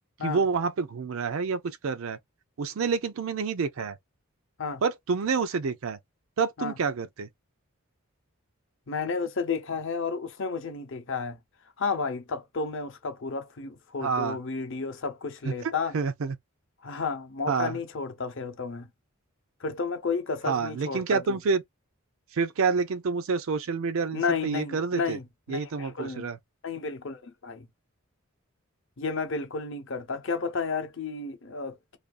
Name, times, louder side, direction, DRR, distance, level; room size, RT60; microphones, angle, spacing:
voice 1, 0.2-2.2 2.6-4.0 4.8-6.0 6.4-7.3 14.0-14.4 15.5-16.4 17.5-17.8 20.5-21.6 22.3-25.2 25.5-26.4, right 5 dB, 65° right, 0.4 m, -28 dB
voice 2, 8.9-11.4 11.8-16.0 16.8-18.9 19.6-21.4 24.1-26.3 26.6-27.7 29.0-32.0, left 4 dB, 55° left, 0.6 m, -32 dB
2.5 x 2.3 x 2.5 m
head